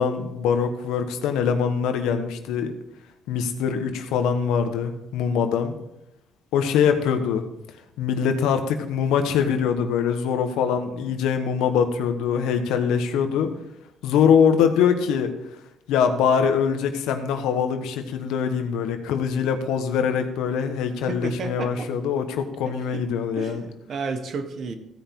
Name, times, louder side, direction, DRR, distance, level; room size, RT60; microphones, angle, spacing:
voice 1, 0.0-2.7 3.3-5.7 6.5-7.4 8.0-13.5 14.0-15.3 15.9-23.6, left 7 dB, 85° left, 7 dB, 1.2 m, -23 dB
voice 2, 21.1-21.9 22.7-23.0 23.4-24.7, right 4 dB, 55° right, 8 dB, 1.4 m, -32 dB
15.5 x 5.3 x 4.5 m, 0.82 s
cardioid pair, 85°, 0 cm